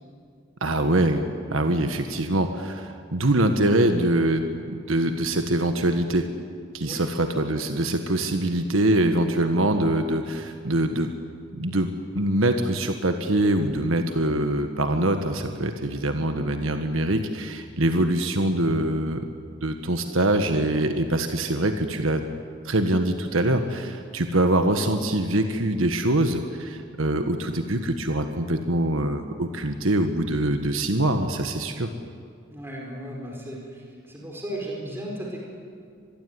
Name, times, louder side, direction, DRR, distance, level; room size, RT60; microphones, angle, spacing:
voice 1, 0.6-1.2 1.5-6.3 6.7-11.1 11.6-19.2 19.6-22.2 22.6-31.9, right 1 dB, 80° right, 6 dB, 1.5 m, -24 dB
voice 2, 6.8-7.1 32.5-35.4, right 1 dB, 10° right, -2 dB, 4.8 m, -35 dB
25.5 x 22.0 x 9.7 m, 2.2 s
head